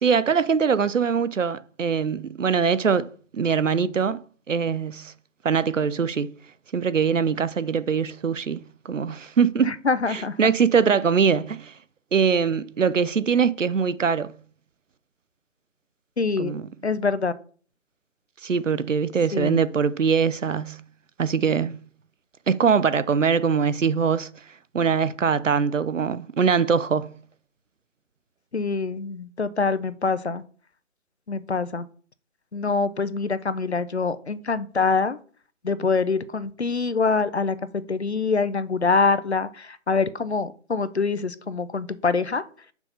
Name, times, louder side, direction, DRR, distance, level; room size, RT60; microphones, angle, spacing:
voice 1, 0.0-3.1 3.3-4.2 4.5-5.1 5.4-6.3 6.7-9.8 10.1-11.7 12.1-14.3 16.4-16.7 18.4-20.8 21.2-21.8 22.5-24.3 24.7-27.1, right 6 dB, 75° right, 0.6 m, -22 dB
voice 2, 9.6-10.4 16.2-16.6 16.8-17.3 19.3-19.6 28.5-30.4 31.3-31.9 32.5-35.2 35.6-42.4, left 4 dB, 60° left, 0.6 m, -25 dB
5.9 x 3.7 x 5.7 m
figure-of-eight pair, 180°, 38 cm